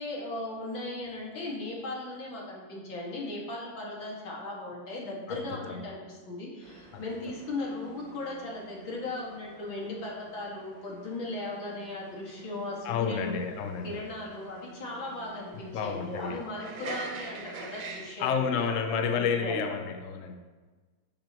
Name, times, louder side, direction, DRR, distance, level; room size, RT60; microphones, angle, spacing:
voice 1, 0.0-13.4 13.8-19.7, left 2 dB, 80° left, -3 dB, 2.9 m, -37 dB
voice 2, 5.3-5.8 6.9-7.0 12.8-14.0 15.7-16.4 18.2-20.4, left 6 dB, 55° left, 6 dB, 0.9 m, -30 dB
sound 1, 6.6-18.2, right 4 dB, 70° right, 1.7 m, -46 dB
11.5 x 8.4 x 3.1 m, 1.3 s
omnidirectional pair, 2.1 m